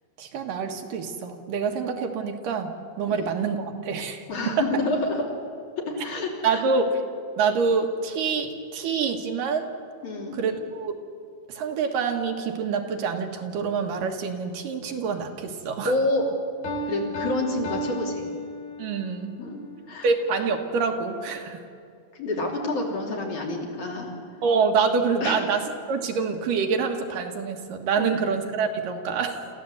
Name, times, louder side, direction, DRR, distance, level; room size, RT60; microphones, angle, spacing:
voice 1, 0.2-4.7 6.4-6.9 7.4-9.7 10.3-10.9 11.5-15.9 18.8-19.4 20.0-21.6 24.4-29.5, right 5 dB, 75° right, 3 dB, 3.0 m, -26 dB
voice 2, 4.3-5.3 5.8-6.6 10.0-10.4 15.8-16.3 16.9-18.3 19.4-20.1 22.1-24.2 25.2-25.4 28.0-28.1, left 2 dB, 60° left, -1 dB, 4.4 m, -28 dB
Piano, 16.6-19.1, equal, 80° left, 4.6 m, -32 dB
27.5 x 15.0 x 8.1 m, 2.3 s
omnidirectional pair, 4.0 m